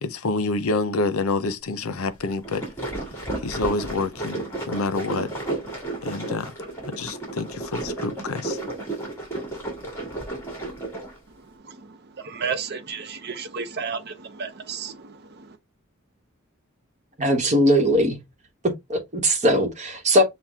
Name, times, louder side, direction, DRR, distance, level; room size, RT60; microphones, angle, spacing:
voice 1, 0.0-2.6 3.4-5.3 6.0-6.5 6.9-8.6, left 3 dB, 75° left, 0.6 m, -27 dB
sound 1, 2.3-11.2, right 2 dB, 10° left, 1.8 m, -32 dB
voice 2, 11.3-15.6, right 5 dB, 50° right, 0.6 m, -33 dB
voice 3, 17.2-18.2 18.9-20.2, equal, 30° right, 1.1 m, -20 dB
5.8 x 2.2 x 3.5 m
head